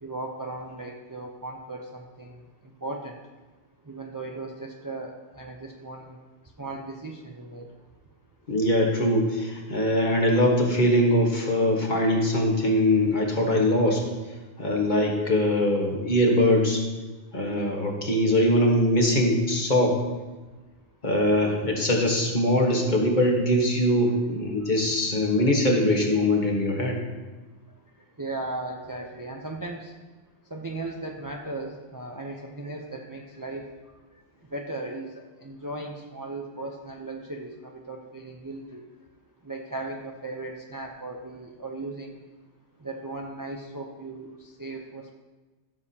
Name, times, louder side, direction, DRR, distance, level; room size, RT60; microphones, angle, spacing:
voice 1, 0.0-2.4 2.8-3.1 3.9-6.2 6.6-7.7 28.2-29.9 30.5-33.7 34.5-38.8 39.4-42.2 42.8-45.1, right 2 dB, 20° right, 0 dB, 0.6 m, -37 dB
voice 2, 8.5-14.1 14.6-16.8 17.3-20.0 21.0-27.0, left 1 dB, 40° left, 0 dB, 1.5 m, -22 dB
14.5 x 7.1 x 2.8 m, 1.2 s
omnidirectional pair, 1.2 m